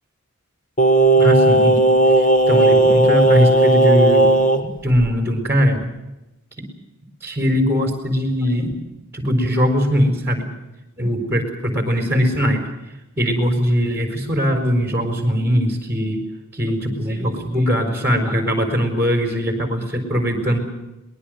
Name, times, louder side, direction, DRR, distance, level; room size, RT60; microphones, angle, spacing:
Singing, 0.8-4.6 4.9-5.1, right 2 dB, 35° left, 1.7 m, -14 dB
voice 1, 1.2-1.9 2.2-4.3 4.8-5.9 6.6-6.7 7.2-8.8 9.1-10.5 11.0-12.7 13.2-16.2 16.5-20.6, equal, 10° right, 5 dB, 4.6 m, -20 dB
23.0 x 20.5 x 6.6 m, 0.98 s
head